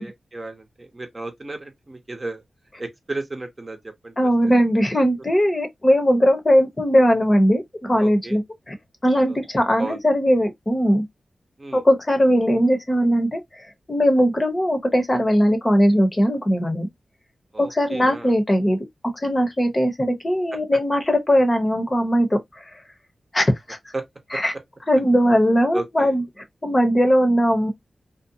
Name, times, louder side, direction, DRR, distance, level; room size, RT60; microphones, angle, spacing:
voice 1, 0.0-2.4 2.8-4.1 8.0-8.4 9.3-9.4 9.8-10.0 11.6-11.8 17.5-18.3 23.9-24.0 24.3-24.4 25.7-26.1, right 2 dB, 35° right, 0.7 m, -34 dB
voice 2, 4.2-8.7 9.0-11.0 11.7-16.9 17.6-18.8 19.0-22.7 23.3-23.8 24.3-24.5 24.9-26.2 26.6-27.7, equal, 30° left, 0.8 m, -19 dB
2.6 x 2.1 x 2.7 m
cardioid pair, 60°, 0 cm